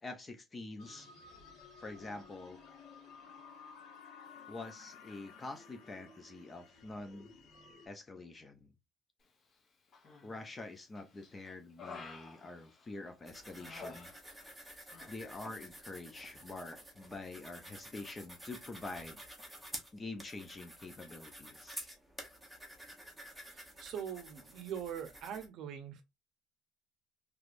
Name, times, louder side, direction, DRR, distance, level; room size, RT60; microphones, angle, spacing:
voice 1, 0.0-1.1 1.8-2.6 4.5-7.3 7.8-8.7 10.2-14.1 15.1-19.2 19.9-21.8, left 2 dB, 15° left, 0.5 m, -46 dB
sound 1, 0.8-7.9, left 5 dB, 60° left, 1.4 m, -55 dB
Human voice, 9.9-10.5 11.0-13.1 13.5-14.6 14.9-15.1, left 4 dB, 30° left, 0.9 m, -50 dB
sound 2, 13.3-25.5, right 1 dB, ahead, 0.8 m, -51 dB
voice 2, 23.8-26.0, right 8 dB, 50° right, 0.7 m, -42 dB
3.4 x 3.1 x 2.5 m
cardioid pair, 175°, 0 cm